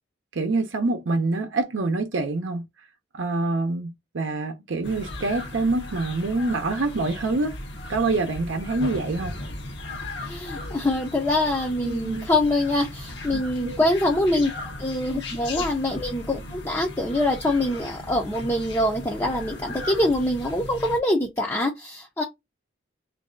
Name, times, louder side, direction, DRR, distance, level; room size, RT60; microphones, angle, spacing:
voice 1, 0.3-2.7 3.1-7.6 7.9-9.4 11.8-12.3 13.3-13.8 15.5-15.6, right 3 dB, 80° right, 0.6 m, -26 dB
sound 1, 4.8-21.0, left 2 dB, 65° left, 0.9 m, -37 dB
voice 2, 10.2-14.5 14.8-22.2, left 1 dB, 15° left, 0.5 m, -24 dB
3.2 x 2.6 x 3.7 m
head